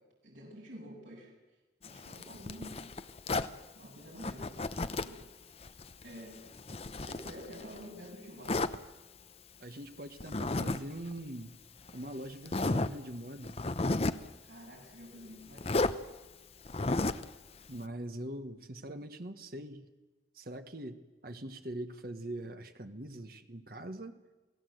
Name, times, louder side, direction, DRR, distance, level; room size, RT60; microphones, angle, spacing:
voice 1, 0.2-1.3 1.8-2.9 3.7-4.5 5.0-5.2 6.0-6.3 6.8-8.7 14.4-15.8, equal, 80° right, -3 dB, 7.7 m, -49 dB
Zipper (clothing), 1.8-3.5 4.2-5.2 5.6-7.8 8.4-8.8 10.2-10.8 11.1-11.2 11.9-12.0 12.4-12.9 13.4-14.3 15.6-16.0 16.6-17.3, left 2 dB, 30° left, 0.7 m, -33 dB
voice 2, 9.6-11.5 11.9-13.6 17.7-19.8 20.3-24.2, right 1 dB, 50° right, 7 dB, 1.4 m, -42 dB
29.0 x 18.5 x 7.9 m, 1.2 s
head